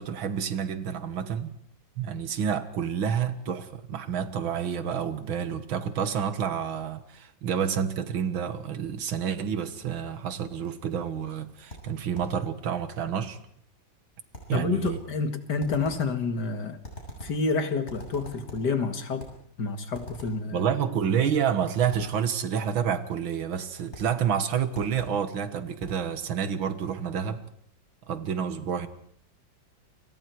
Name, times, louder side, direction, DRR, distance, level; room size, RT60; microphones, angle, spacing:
voice 1, 0.0-1.5 2.0-13.4 14.5-15.0 20.5-27.4 28.1-28.9, right 7 dB, 85° right, 11 dB, 2.3 m, -29 dB
sound 1, 11.7-12.4 14.3-15.1 15.6-16.1 16.8-17.5 17.9-18.7 19.2-19.5 19.9-20.5 21.9-22.2 23.9-24.2 24.7-25.3 25.8-26.1, equal, 35° left, 7.4 m, -44 dB
voice 2, 14.5-16.8 17.2-19.3 19.6-20.7, left 4 dB, 60° left, 8 dB, 2.4 m, -29 dB
29.5 x 24.5 x 4.7 m, 0.65 s
omnidirectional pair, 2.1 m